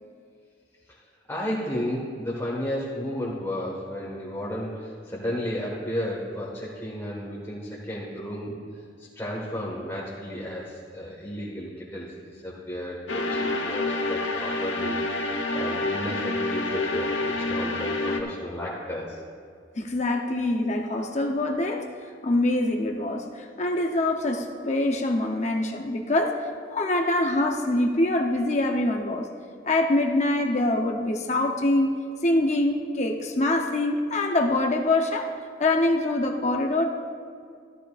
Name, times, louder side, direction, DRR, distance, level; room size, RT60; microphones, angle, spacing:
voice 1, 1.3-8.5 9.1-19.2, equal, 15° left, -6 dB, 1.4 m, -33 dB
sound 1, 13.1-18.2, left 2 dB, 90° left, 1.1 m, -28 dB
voice 2, 19.8-21.9 22.2-26.4 26.7-29.3 29.6-35.3 35.6-36.9, left 2 dB, 40° left, 2 dB, 0.7 m, -24 dB
14.5 x 12.5 x 2.4 m, 2.3 s
head